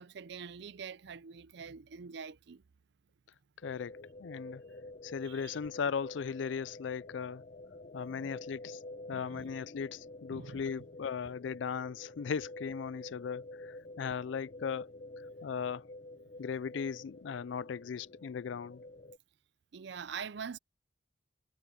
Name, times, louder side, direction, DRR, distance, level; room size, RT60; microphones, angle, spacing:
voice 1, 0.0-2.6 5.2-5.5 8.1-8.3 9.1-9.5 10.3-10.6 19.7-20.6, right 6 dB, 65° right, 0.5 m, -44 dB
voice 2, 3.6-4.6 5.0-7.4 7.9-8.8 9.1-14.9 15.4-15.9 16.4-18.8, left 6 dB, 75° left, 0.4 m, -38 dB
sound 1, 3.6-19.2, left 2 dB, 45° left, 0.9 m, -49 dB
head